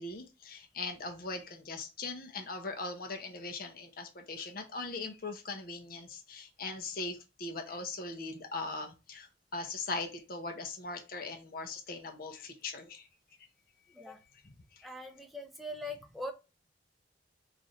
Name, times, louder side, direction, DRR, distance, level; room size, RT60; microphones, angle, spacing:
voice 1, 0.0-13.1 14.4-14.9, left 3 dB, 50° left, 5 dB, 0.6 m, -40 dB
voice 2, 14.8-16.3, left 1 dB, ahead, 4 dB, 0.5 m, -41 dB
3.1 x 2.5 x 3.9 m, 0.28 s
head